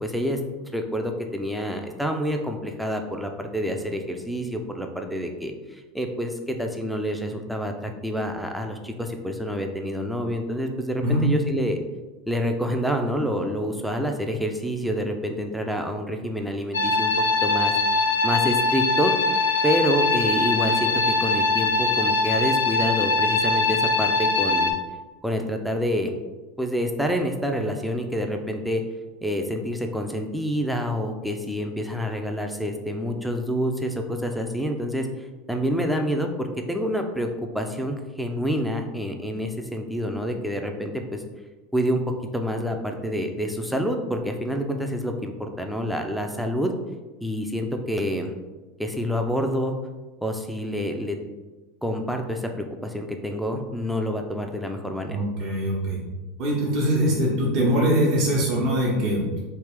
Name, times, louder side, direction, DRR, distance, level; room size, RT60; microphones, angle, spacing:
voice 1, 0.0-11.8 12.3-17.7 18.2-19.1 19.6-24.7 25.2-26.1 26.6-28.8 29.2-35.1 35.5-41.2 41.7-42.0 42.3-46.7 47.2-48.3 48.8-49.7 50.2-51.2 51.8-55.2, equal, ahead, 3 dB, 0.5 m, -27 dB
sound 1, 16.7-24.7, left 3 dB, 85° left, 0.4 m, -22 dB
voice 2, 55.1-56.0 56.4-59.4, equal, 50° right, -4 dB, 1.0 m, -22 dB
3.3 x 2.4 x 3.6 m, 1.2 s
hypercardioid pair, 80°, 0 cm